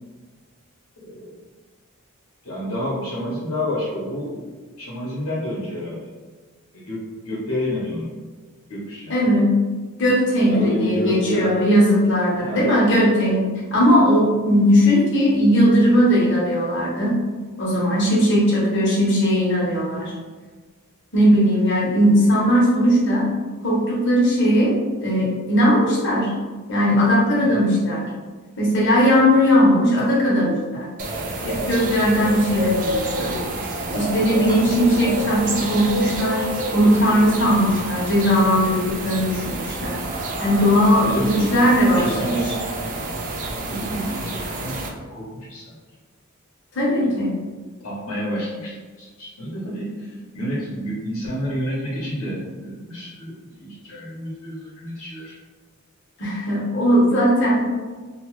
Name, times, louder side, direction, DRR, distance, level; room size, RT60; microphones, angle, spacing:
voice 1, 1.0-1.3 2.4-4.4 4.8-6.1 6.7-8.1 8.7-9.1 10.5-11.6 12.4-12.7 27.4-27.6 41.0-41.5 42.0-42.5 43.7-44.7 45.1-45.8 47.0-47.1 47.8-55.4, equal, 85° left, -7 dB, 0.9 m, -29 dB
voice 2, 9.1-9.6 10.0-13.4 13.7-17.1 17.6-20.1 21.1-23.3 23.6-24.7 25.0-26.3 26.7-28.0 28.6-30.9 31.4-33.4 33.9-36.4 36.7-40.0 40.4-42.3 46.7-47.3 56.2-57.6, equal, 55° left, -5 dB, 1.0 m, -18 dB
sound 1, 31.0-44.9, right 1 dB, 35° right, 0.4 m, -28 dB
2.9 x 2.3 x 3.0 m, 1.4 s
head